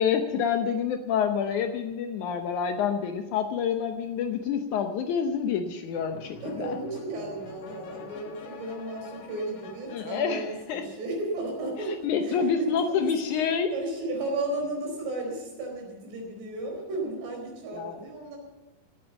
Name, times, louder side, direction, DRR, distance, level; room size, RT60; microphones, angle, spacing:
voice 1, 0.0-6.8 9.9-10.9 11.9-13.7 17.7-18.0, left 7 dB, 85° left, 5 dB, 1.7 m, -28 dB
sound 1, 5.9-11.4, left 3 dB, 65° left, 1.4 m, -46 dB
voice 2, 6.4-13.1 13.7-18.4, right 2 dB, 85° right, 0 dB, 6.5 m, -34 dB
17.0 x 8.8 x 7.0 m, 1.0 s
omnidirectional pair, 4.7 m